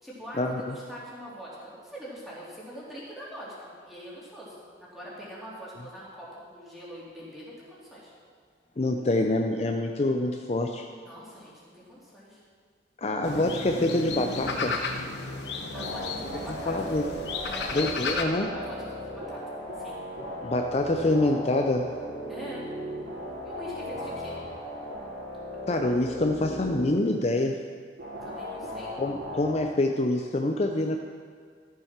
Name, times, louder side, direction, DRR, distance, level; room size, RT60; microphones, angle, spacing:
voice 1, 0.0-8.1 11.0-12.4 15.7-16.9 17.4-17.7 18.5-20.0 22.3-22.7 23.4-24.3 28.2-28.9, equal, ahead, -8 dB, 3.2 m, -43 dB
voice 2, 8.8-10.9 13.0-14.8 16.3-17.1 17.7-18.5 20.4-21.9 25.7-27.6 29.0-31.0, left 2 dB, 35° left, 3 dB, 0.5 m, -26 dB
sound 1, 13.2-18.2, left 4 dB, 70° left, 1.0 m, -33 dB
sound 2, 15.7-26.8 28.0-29.5, equal, 65° right, 3.6 m, -37 dB
13.5 x 7.3 x 5.9 m, 2.1 s
head